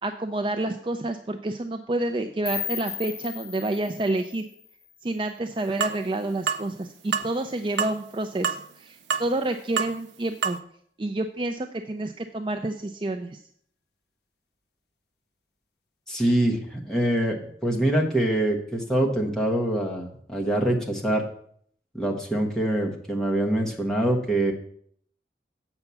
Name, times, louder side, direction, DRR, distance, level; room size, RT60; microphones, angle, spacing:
voice 1, 0.0-4.4 5.0-10.6 11.0-13.4, right 2 dB, 30° right, 5 dB, 0.4 m, -29 dB
sound 1, 2.5-5.4, left 8 dB, 70° left, 0.8 m, -36 dB
sound 2, 5.8-6.0 6.5-6.7 7.1-7.3 7.8-8.0 8.4-8.6 9.1-9.3 9.8-10.0 10.4-10.6, right 6 dB, 85° right, 0.6 m, -26 dB
voice 2, 16.1-21.2 21.9-24.5, right 1 dB, 5° left, -2 dB, 1.3 m, -24 dB
7.9 x 5.7 x 7.0 m, 0.63 s
head